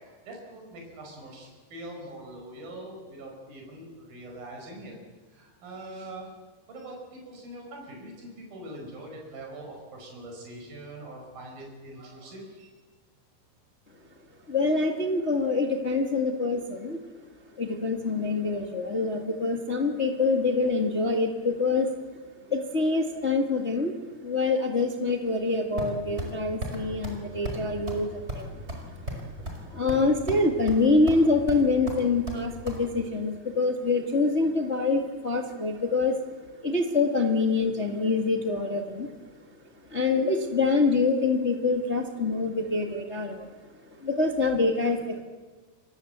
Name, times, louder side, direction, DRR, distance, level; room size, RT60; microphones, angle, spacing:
voice 1, 0.0-4.9 5.3-6.3 6.7-12.7, right 1 dB, 65° right, 1 dB, 7.4 m, -43 dB
voice 2, 14.5-17.0 17.5-21.9 22.5-23.9 24.2-28.6 28.9-29.3 29.6-36.2 36.6-39.1 39.9-43.5 44.0-45.2, left 3 dB, 45° left, 2 dB, 0.8 m, -25 dB
sound 1, 25.8-26.3 26.6-26.8 27.0-27.2 27.4-27.6 27.9-28.0 28.3-29.6 29.9-30.4 30.7-31.2 31.5-32.8, right 1 dB, 15° right, 5.2 m, -34 dB
28.5 x 24.5 x 8.1 m, 1.4 s
omnidirectional pair, 4.6 m